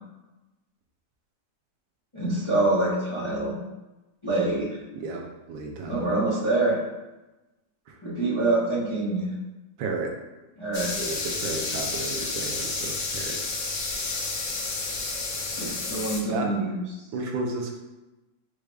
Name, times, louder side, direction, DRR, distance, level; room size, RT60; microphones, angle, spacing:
voice 1, 2.1-3.5 4.2-4.8 5.9-6.8 8.0-9.3 10.6-10.9 15.6-16.8, right 2 dB, 25° left, -9 dB, 0.7 m, -25 dB
voice 2, 4.9-6.1 7.9-8.0 9.8-10.1 11.0-13.4 16.3-16.5 17.1-17.8, right 3 dB, 90° right, 1 dB, 1.5 m, -33 dB
sound 1, 10.7-16.2, left 3 dB, 70° left, 1.5 m, -30 dB
4.6 x 2.3 x 4.8 m, 1.1 s
omnidirectional pair, 2.1 m